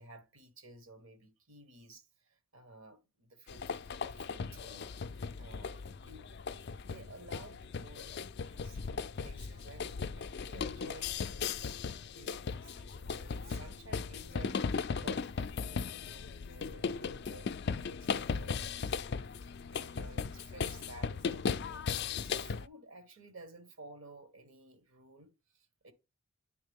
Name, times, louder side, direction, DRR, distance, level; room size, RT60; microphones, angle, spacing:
voice 1, 0.0-3.7 3.9-8.8 9.2-11.8 12.1-14.6 15.0-25.9, right 2 dB, 70° right, 1.5 m, -55 dB
sound 1, 3.5-22.7, left 5 dB, 50° left, 0.4 m, -37 dB
9.3 x 3.6 x 3.5 m
head